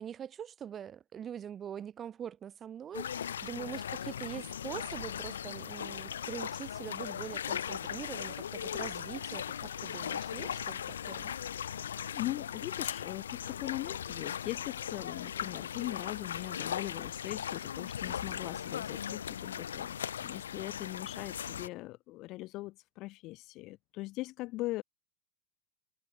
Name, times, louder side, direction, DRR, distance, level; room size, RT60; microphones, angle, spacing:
voice 1, 0.0-11.3, right 9 dB, 25° right, 1.1 m, -43 dB
sound 1, 2.9-21.7, left 9 dB, 65° left, 1.4 m, -38 dB
voice 2, 12.1-24.8, left 19 dB, 40° left, 0.5 m, -40 dB
figure-of-eight pair, 90°, 0 cm